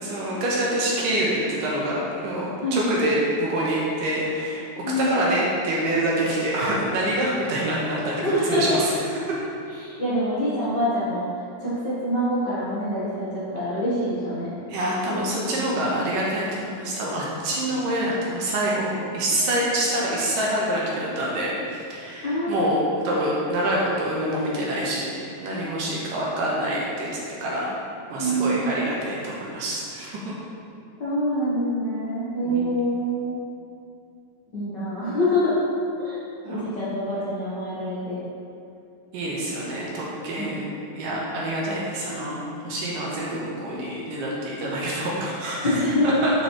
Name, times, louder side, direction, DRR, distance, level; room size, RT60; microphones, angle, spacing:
voice 1, 0.0-9.4 14.7-25.1 25.4-27.1 27.4-27.8 28.1-30.3 32.4-32.7 36.4-36.7 39.1-40.6 40.9-46.3, right 1 dB, 70° right, -5 dB, 2.4 m, -26 dB
voice 2, 8.2-8.8 9.8-11.2 11.6-14.5 15.1-15.6 22.2-22.8 28.2-28.7 31.0-33.4 34.5-35.6 36.0-36.1 36.5-38.2 40.3-40.5 45.6-46.2, equal, 65° left, -12 dB, 1.1 m, -25 dB
8.2 x 6.9 x 3.2 m, 2.5 s
omnidirectional pair, 4.5 m